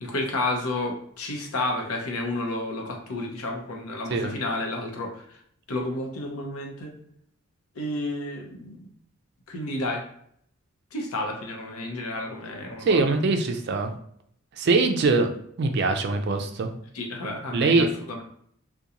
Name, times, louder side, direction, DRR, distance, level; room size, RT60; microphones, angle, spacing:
voice 1, 0.0-5.2 5.7-7.0 7.8-8.8 9.5-10.0 10.9-13.1 16.9-18.2, left 2 dB, 90° left, 1 dB, 0.7 m, -31 dB
voice 2, 12.8-13.9 14.6-15.3 15.6-16.7 17.5-17.9, right 3 dB, 50° right, 6 dB, 0.3 m, -22 dB
2.8 x 2.2 x 2.4 m, 0.67 s
head